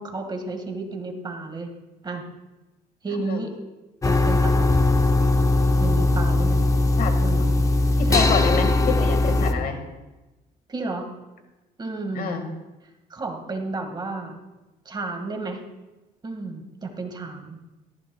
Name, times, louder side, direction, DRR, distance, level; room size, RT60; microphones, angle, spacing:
voice 1, 0.0-1.7 2.0-2.2 3.0-3.5 4.0-4.8 5.8-6.6 7.2-7.5 8.0-8.4 10.7-11.0 11.8-12.4 13.1-14.4 14.9-15.6 16.2-17.6, right 3 dB, 25° right, 4 dB, 1.8 m, -32 dB
sound 1, 4.0-9.5, left 2 dB, 20° left, 0.8 m, -20 dB
voice 2, 7.0-7.5 8.0-9.8 12.1-12.5, left 6 dB, 60° left, 5 dB, 1.8 m, -27 dB
17.5 x 14.0 x 2.3 m, 1.1 s
cardioid pair, 110°, 17 cm